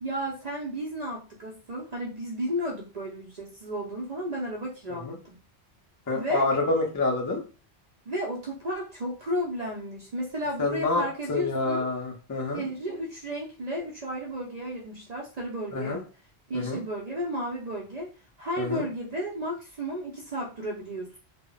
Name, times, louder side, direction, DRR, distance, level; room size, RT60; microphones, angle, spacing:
voice 1, 0.0-5.4 6.1-6.5 8.1-11.9 12.5-16.1 16.5-18.1 18.4-21.2, equal, 50° right, -2 dB, 0.5 m, -33 dB
voice 2, 6.1-7.4 10.6-12.6 15.7-16.0 16.5-16.8 18.6-18.8, left 3 dB, 30° left, 1 dB, 0.4 m, -27 dB
2.1 x 2.0 x 3.7 m, 0.35 s
omnidirectional pair, 1.1 m